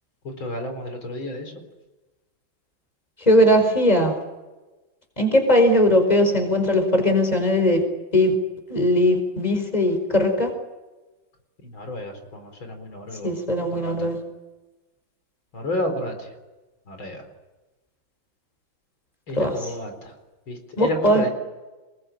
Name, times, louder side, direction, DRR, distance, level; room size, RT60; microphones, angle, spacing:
voice 1, 0.2-1.5 11.7-13.3 13.7-14.1 15.5-16.3 16.9-17.2 19.3-20.1 20.5-21.3, left 1 dB, 80° left, 6 dB, 4.9 m, -31 dB
voice 2, 3.3-4.1 5.2-7.8 8.1-8.3 8.7-10.5 13.2-14.2 19.4-19.7 20.8-21.3, left 1 dB, 20° left, 6 dB, 4.9 m, -19 dB
27.0 x 21.5 x 9.0 m, 1.1 s
omnidirectional pair, 2.1 m